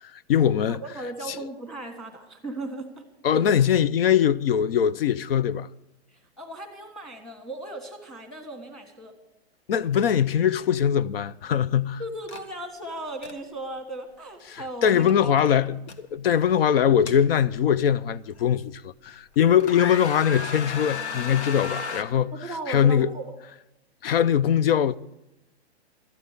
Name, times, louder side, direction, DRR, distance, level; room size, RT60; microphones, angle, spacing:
voice 1, 0.1-0.8 1.3-1.4 3.2-5.7 9.7-12.0 14.5-22.3 22.7-23.1 24.0-24.9, left 9 dB, 60° left, 0.5 m, -22 dB
voice 2, 0.7-3.0 3.3-3.6 6.1-9.1 12.0-15.5 22.3-23.3, right 1 dB, ahead, 1.5 m, -37 dB
sound 1, 10.0-10.1 10.4-10.7 12.3-12.4 13.0-13.3 14.9-15.1 15.4-16.0 16.8-17.7 18.4-18.5 19.1-19.3 19.6-22.0, left 5 dB, 80° left, 1.5 m, -34 dB
13.0 x 9.4 x 6.6 m
hypercardioid pair, 150°, 33 cm